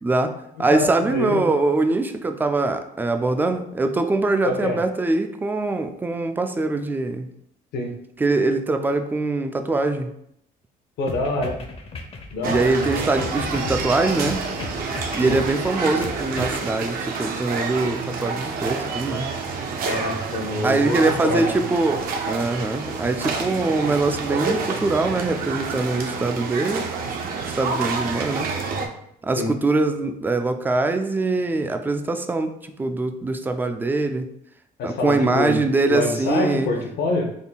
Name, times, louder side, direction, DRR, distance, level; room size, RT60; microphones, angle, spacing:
voice 1, 0.0-7.3 8.2-10.1 12.4-14.5 15.1-19.3 20.6-26.9 27.6-28.5 29.2-34.3 34.8-36.7, right 3 dB, 10° right, 7 dB, 0.3 m, -23 dB
voice 2, 0.7-1.5 4.4-4.8 7.7-7.9 11.0-11.5 12.3-12.7 15.2-15.4 19.8-21.0 21.2-21.5 29.4-29.5 34.8-35.6 35.9-37.4, left 2 dB, 75° left, 2 dB, 0.8 m, -25 dB
sound 1, 11.1-16.7, left 3 dB, 35° left, 0.6 m, -35 dB
sound 2, 12.4-28.9, right 4 dB, 60° right, 0.6 m, -28 dB
3.7 x 2.2 x 3.9 m, 0.75 s
cardioid pair, 110°, 17 cm